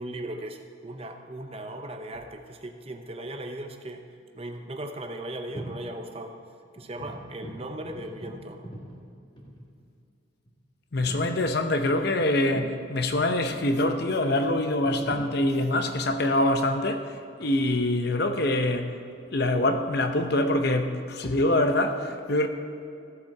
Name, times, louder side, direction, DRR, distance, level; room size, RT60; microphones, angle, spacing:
voice 1, 0.0-4.0 4.3-6.4 6.8-8.7, right 1 dB, 30° right, 0.7 m, -38 dB
sound 1, 1.6-2.5 4.2-4.3 4.5-4.8 5.3-5.9 6.2-6.3 6.7-9.9 10.5-10.6 10.9-11.3 12.2-12.8 13.3-13.8 14.6-15.3 15.7-16.0 16.5-19.6 19.9-21.3, right 1 dB, 25° left, 1.6 m, -44 dB
voice 2, 10.9-17.1 17.4-18.9 19.3-22.5, left 1 dB, 55° left, 0.7 m, -24 dB
15.0 x 7.5 x 4.7 m
head